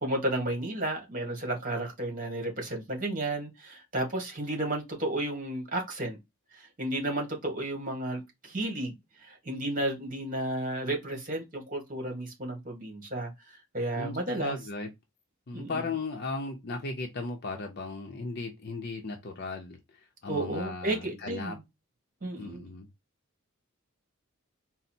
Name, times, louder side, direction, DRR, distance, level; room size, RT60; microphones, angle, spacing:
voice 1, 0.0-6.2 6.5-14.6 15.5-15.8 20.3-21.6 22.2-22.7, right 1 dB, 40° right, 1.5 m, -33 dB
voice 2, 14.0-14.9 15.5-21.6 22.4-22.9, left 3 dB, 50° left, 0.6 m, -36 dB
4.0 x 2.1 x 4.3 m
head